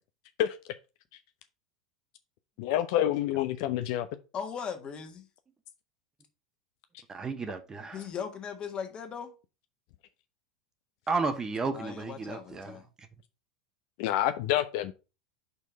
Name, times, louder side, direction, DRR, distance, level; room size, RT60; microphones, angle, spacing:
voice 1, 2.6-4.1 14.0-14.9, left 12 dB, 55° left, 0.5 m, -27 dB
voice 2, 4.3-5.3 7.9-9.3 11.7-12.9, left 7 dB, 35° left, 1.5 m, -38 dB
voice 3, 7.1-8.0 11.1-12.7, right 4 dB, 20° right, 1.0 m, -33 dB
5.4 x 4.5 x 5.2 m
figure-of-eight pair, 85°, 3 cm